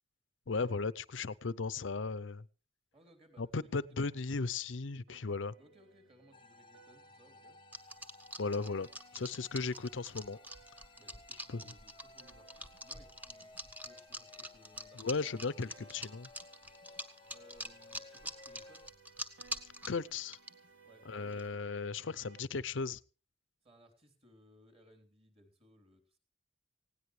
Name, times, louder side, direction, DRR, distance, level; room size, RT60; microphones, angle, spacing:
voice 1, 0.5-2.4 3.4-5.5 8.4-8.9 9.1-10.4 11.5-11.6 15.0-16.3 19.9-20.4 21.1-23.0, left 4 dB, 80° left, 18 dB, 0.7 m, -36 dB
voice 2, 2.9-3.7 4.0-4.2 5.6-7.6 11.0-15.0 15.4-15.7 17.3-18.9 20.8-21.6 23.6-26.2, equal, 30° right, 6 dB, 3.6 m, -63 dB
sound 1, 5.1-22.4, right 4 dB, 90° right, 1.3 m, -64 dB
sound 2, 6.3-18.9, left 3 dB, 25° left, 0.7 m, -58 dB
sound 3, 7.7-20.5 21.3-21.5, equal, 10° right, 1.0 m, -44 dB
19.0 x 17.0 x 3.3 m, 0.34 s
head